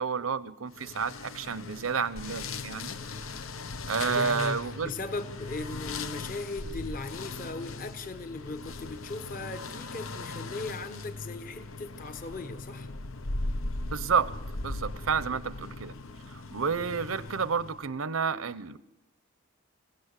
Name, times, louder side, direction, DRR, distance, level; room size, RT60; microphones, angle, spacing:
voice 1, 0.0-2.9 3.9-4.9 13.9-14.3 14.6-15.9 16.5-18.8, right 5 dB, 85° right, 15 dB, 0.8 m, -30 dB
sound 1, 0.7-17.9, left 3 dB, 85° left, 0.9 m, -39 dB
voice 2, 4.1-12.9, left 3 dB, 40° left, 10 dB, 1.1 m, -38 dB
26.5 x 16.5 x 8.3 m, 0.94 s
head